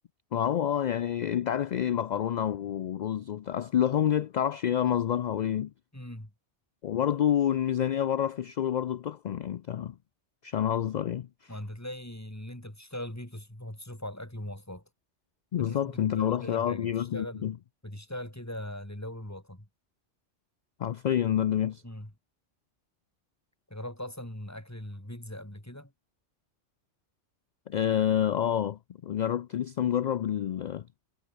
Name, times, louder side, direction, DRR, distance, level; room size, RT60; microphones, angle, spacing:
voice 1, 0.3-5.7 6.8-9.9 10.4-11.5 15.5-17.5 20.8-21.8 27.7-30.9, left 10 dB, 60° left, 0.4 m, -28 dB
voice 2, 5.9-6.3 11.5-14.8 15.6-17.5 17.8-19.7 21.8-22.1 23.7-25.9, left 1 dB, 15° left, 3.8 m, -40 dB
omnidirectional pair, 1.2 m